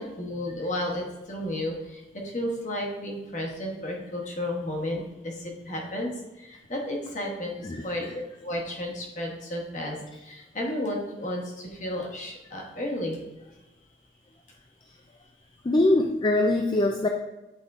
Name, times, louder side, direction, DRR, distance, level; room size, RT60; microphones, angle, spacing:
voice 1, 0.0-6.1 6.4-10.0 10.2-13.2, left 1 dB, 45° left, 0 dB, 1.3 m, -33 dB
voice 2, 7.6-8.2 15.6-17.1, left 2 dB, 25° left, 3 dB, 0.4 m, -23 dB
8.4 x 3.6 x 3.7 m, 1.0 s
head